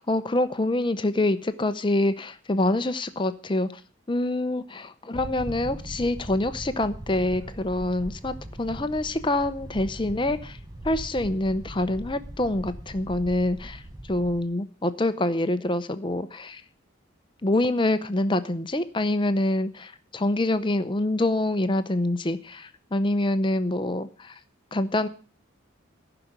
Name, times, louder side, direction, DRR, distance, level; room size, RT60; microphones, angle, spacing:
voice 1, 0.0-3.7 4.1-10.6 10.8-13.8 14.1-16.6 17.4-24.3 24.7-25.1, left 1 dB, 25° left, 11 dB, 0.7 m, -26 dB
sound 1, 5.1-14.4, right 1 dB, 20° right, 0.8 m, -40 dB
15.0 x 5.9 x 7.9 m, 0.39 s
head